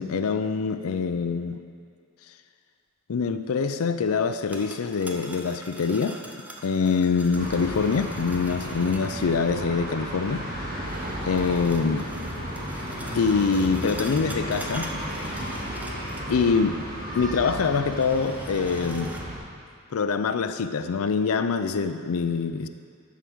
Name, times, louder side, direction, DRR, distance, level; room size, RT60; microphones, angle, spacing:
voice 1, 0.0-1.6 3.1-6.2 6.6-10.4 11.3-12.1 13.1-15.0 15.3-15.5 16.3-16.8 17.1-19.1 19.9-22.7, left 5 dB, 85° left, 9 dB, 0.5 m, -25 dB
sound 1, 4.2-9.4 10.8-16.5 16.8-16.9 17.8-19.2, right 1 dB, 5° right, 0.5 m, -43 dB
sound 2, 7.4-19.4, equal, 40° right, 2.5 m, -34 dB
11.5 x 4.7 x 6.1 m, 2.2 s
head